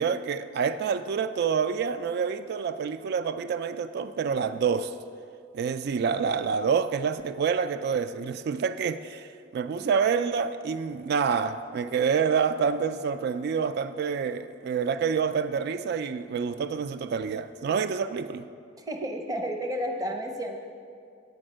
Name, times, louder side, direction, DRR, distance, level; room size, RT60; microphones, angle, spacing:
voice 1, 0.0-5.0 5.5-18.4, right 6 dB, 60° right, 12 dB, 0.3 m, -27 dB
voice 2, 18.8-20.6, equal, 20° right, 3 dB, 0.6 m, -31 dB
8.6 x 5.3 x 7.6 m, 2.3 s
head